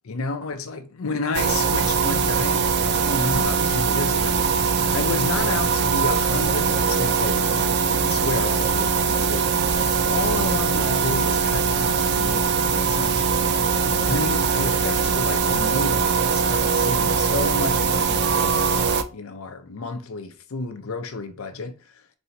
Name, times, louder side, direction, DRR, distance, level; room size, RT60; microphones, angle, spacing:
voice 1, 0.0-13.4 14.0-21.8, left 3 dB, 75° left, 0.5 m, -31 dB
sound 1, 1.3-19.0, right 5 dB, 50° right, 0.4 m, -21 dB
4.2 x 2.7 x 3.9 m
head